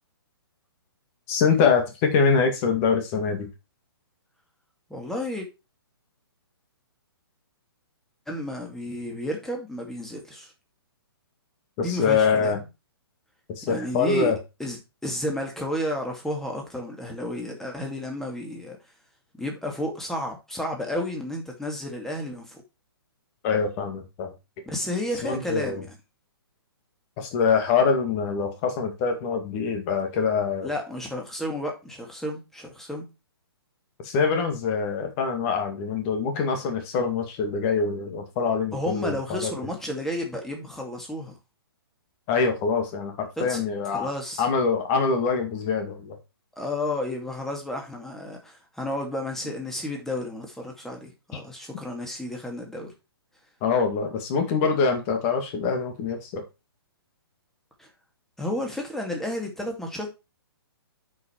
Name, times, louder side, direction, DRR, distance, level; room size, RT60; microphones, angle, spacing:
voice 1, 1.3-3.5 11.8-12.6 13.6-14.4 23.4-24.3 25.2-25.8 27.2-30.7 34.0-39.5 42.3-44.1 44.4-46.2 53.6-56.4, left 5 dB, 35° left, 2.1 m, -24 dB
voice 2, 4.9-5.5 8.3-10.5 11.8-12.5 13.6-14.3 14.6-18.8 19.4-22.6 24.7-25.9 30.6-33.1 38.7-41.3 43.4-43.6 43.9-44.5 46.6-52.9 57.8-57.9 58.4-60.1, left 1 dB, 5° left, 2.3 m, -32 dB
9.1 x 5.4 x 4.5 m
figure-of-eight pair, 130°, 13 cm